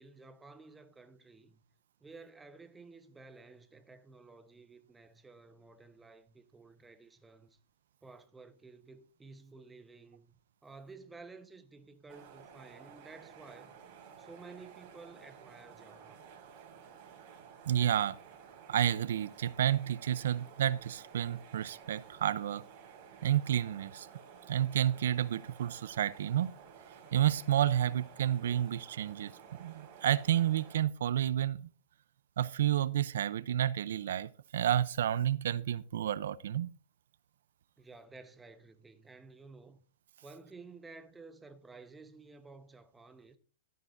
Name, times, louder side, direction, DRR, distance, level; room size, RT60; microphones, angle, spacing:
voice 1, 0.0-1.6 2.0-7.5 8.0-10.3 10.6-13.8 14.2-16.2 37.8-39.8 40.2-43.4, right 3 dB, 10° right, 1.0 m, -53 dB
sound 1, 12.1-30.8, right 7 dB, 40° right, 3.7 m, -54 dB
voice 2, 17.7-18.2 18.7-22.6 23.2-24.1 24.5-26.5 27.1-29.3 29.6-31.7 32.4-36.7, right 11 dB, 75° right, 0.6 m, -30 dB
13.0 x 11.0 x 2.6 m
hypercardioid pair, 140°, 0 cm